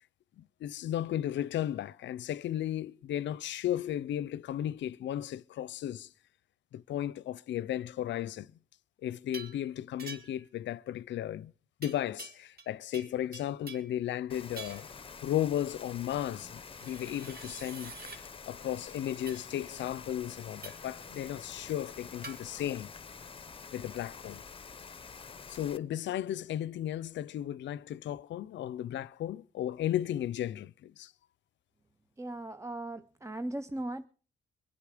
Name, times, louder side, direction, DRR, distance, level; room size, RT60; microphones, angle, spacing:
voice 1, 0.4-6.1 6.7-8.5 9.0-11.5 11.8-14.9 15.2-22.9 23.7-24.4 25.5-31.1, left 11 dB, 65° left, 0.6 m, -35 dB
sound 1, 9.3-9.6 10.0-10.5 11.8-12.7 12.9-14.0 14.6-14.9 16.7-18.2 19.3-19.5 20.6-20.9 22.2-22.4, right 4 dB, 50° right, 2.3 m, -47 dB
Rain, 14.3-25.8, left 5 dB, 25° left, 0.8 m, -47 dB
voice 2, 32.2-34.1, right 1 dB, 15° right, 0.6 m, -38 dB
23.0 x 8.3 x 5.0 m
cardioid pair, 90°, 20 cm